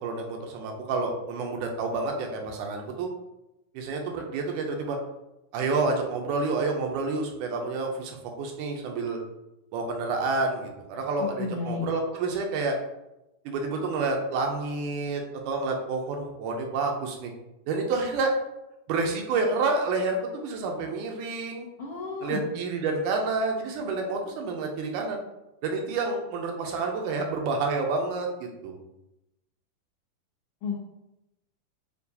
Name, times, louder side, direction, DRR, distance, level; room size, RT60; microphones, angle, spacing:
voice 1, 0.0-3.1 3.8-5.0 5.5-9.2 9.7-12.8 13.5-17.3 17.7-18.3 18.9-21.7 22.2-25.2 25.6-28.7, right 3 dB, 80° right, 2 dB, 2.0 m, -29 dB
voice 2, 11.4-11.8 21.8-22.4 30.6-30.7, left 4 dB, 85° left, -5 dB, 1.3 m, -32 dB
6.6 x 2.3 x 2.7 m, 0.90 s
omnidirectional pair, 3.7 m